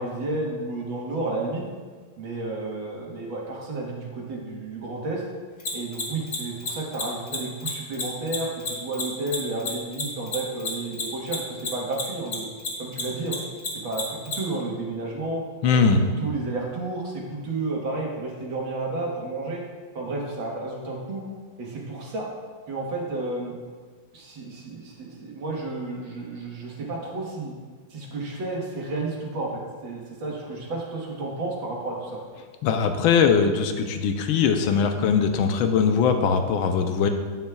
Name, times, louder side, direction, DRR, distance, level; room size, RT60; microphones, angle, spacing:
voice 1, 0.0-1.6 2.2-5.2 5.7-12.5 12.8-13.4 13.8-15.4 15.7-15.9 16.2-19.6 20.0-21.2 21.6-22.3 22.7-23.6 24.1-27.5 27.9-32.2, right 2 dB, 75° right, -2 dB, 2.2 m, -31 dB
Mechanisms, 5.6-12.3 12.6-14.3, left 4 dB, 55° left, 2.0 m, -29 dB
voice 2, 15.6-16.0 32.6-37.1, left 6 dB, 85° left, 6 dB, 1.5 m, -21 dB
9.3 x 9.1 x 2.3 m, 1.5 s
omnidirectional pair, 2.2 m